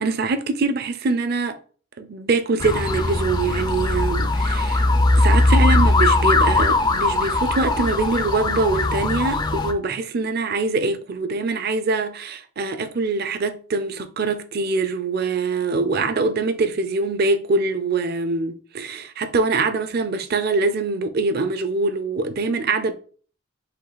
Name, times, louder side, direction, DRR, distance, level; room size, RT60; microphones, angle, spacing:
voice 1, 0.0-1.6 2.0-4.9 5.2-22.9, right 3 dB, 45° right, 0.5 m, -23 dB
sound 1, 2.6-9.7, left 2 dB, 20° left, 0.4 m, -19 dB
5.2 x 2.4 x 4.0 m
head